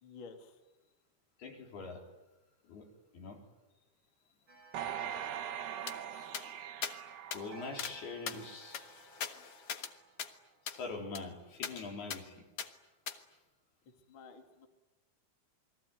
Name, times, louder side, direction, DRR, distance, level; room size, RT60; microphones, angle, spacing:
voice 1, 0.0-0.6 14.1-14.7, left 4 dB, 35° left, 5 dB, 2.7 m, -51 dB
voice 2, 1.4-2.0 2.6-2.9 3.1-3.4 6.1-6.3 7.3-9.0 10.6-12.4, left 4 dB, 80° left, 2 dB, 6.3 m, -44 dB
Clock, 4.5-6.7 7.5-10.9, right 4 dB, 30° right, 6.9 m, -59 dB
sound 1, 4.7-8.2 8.7-8.8, right 9 dB, 85° right, 4.0 m, -41 dB
sound 2, 5.9-6.0 6.3-6.5 6.8-6.9 7.3-7.4 7.8-7.9 8.3-9.9 10.2-10.3 10.7-10.8 11.1-11.2 11.6-11.7 12.1-12.2 12.6-12.7 13.1-13.2, left 7 dB, 55° left, 1.7 m, -40 dB
29.0 x 22.0 x 9.4 m, 1.0 s
omnidirectional pair, 4.5 m